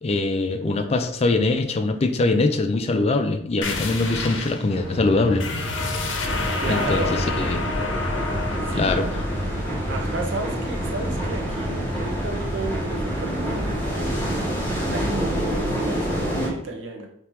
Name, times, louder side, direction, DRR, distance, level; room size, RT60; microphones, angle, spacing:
voice 1, 0.0-5.7 6.7-7.6 8.7-9.1, left 3 dB, 35° left, 7 dB, 0.4 m, -23 dB
sound 1, 3.6-12.8, left 3 dB, 75° left, 0.7 m, -30 dB
sound 2, 4.7-15.2, right 1 dB, 25° right, 0.9 m, -33 dB
sound 3, 6.2-16.5, equal, 10° left, 1.7 m, -28 dB
voice 2, 6.6-7.3 8.6-9.0 9.9-14.1 14.6-17.1, right 2 dB, 75° right, 2 dB, 0.8 m, -32 dB
3.5 x 2.9 x 4.4 m, 0.74 s
head